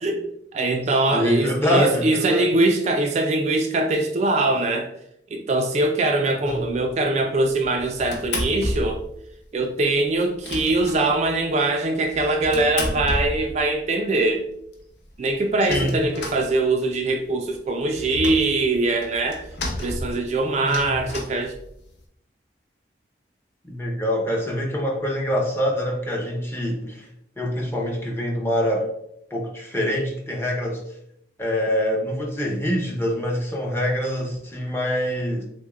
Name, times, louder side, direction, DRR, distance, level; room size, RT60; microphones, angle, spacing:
voice 1, 0.0-4.9 5.3-9.0 9.5-14.4 15.2-19.4 19.8-21.5, right 2 dB, 40° right, 3 dB, 0.3 m, -22 dB
voice 2, 1.1-2.5 6.4-6.6 15.7-15.9 20.6-21.1 23.7-27.1 27.4-28.9 29.3-30.8 31.4-35.4, equal, 15° left, -1 dB, 0.7 m, -25 dB
sound 1, 6.5-6.9 7.4-9.2 9.4-9.5 9.8-9.9 10.1-11.5 12.0-13.8 14.3-14.4 14.7-14.8 15.0-17.1 17.4-22.0, left 1 dB, 85° left, 0.7 m, -32 dB
6.2 x 2.1 x 2.4 m, 0.75 s
head